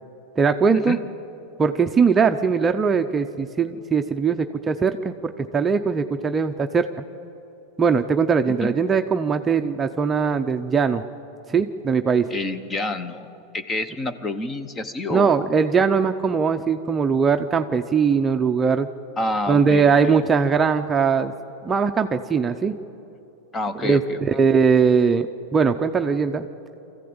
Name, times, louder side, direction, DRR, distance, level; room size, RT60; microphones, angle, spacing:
voice 1, 0.4-1.0 1.6-6.9 7.8-11.0 11.5-12.3 15.1-18.9 19.5-21.3 21.6-22.7 23.8-25.3 25.5-26.5, right 5 dB, 15° right, 6 dB, 0.6 m, -20 dB
voice 2, 12.3-15.5 19.2-20.2 23.5-24.2, left 2 dB, 20° left, 12 dB, 1.0 m, -28 dB
24.0 x 15.0 x 8.8 m, 2.8 s
supercardioid pair, 140°, 0 cm